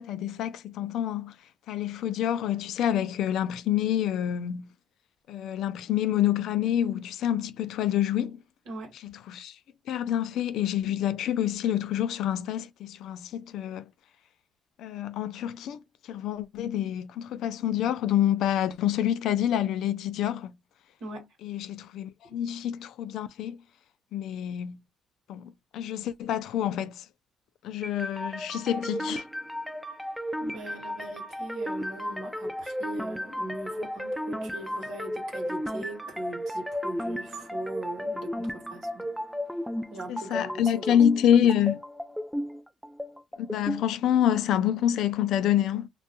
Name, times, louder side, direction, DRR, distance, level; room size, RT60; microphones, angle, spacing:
voice 1, 0.0-1.3 1.7-4.7 5.3-8.4 9.0-9.5 9.9-13.9 14.8-15.8 16.1-20.5 21.4-23.6 24.1-24.8 25.3-27.0 27.6-29.2 40.1-41.8 43.4-45.9, left 10 dB, 80° left, 0.3 m, -27 dB
sound 1, 27.8-43.8, equal, ahead, 0.3 m, -34 dB
voice 2, 30.4-39.0 39.9-41.0 41.3-41.5, right 2 dB, 85° right, 1.0 m, -40 dB
2.2 x 2.1 x 2.7 m
cardioid pair, 90°, 0 cm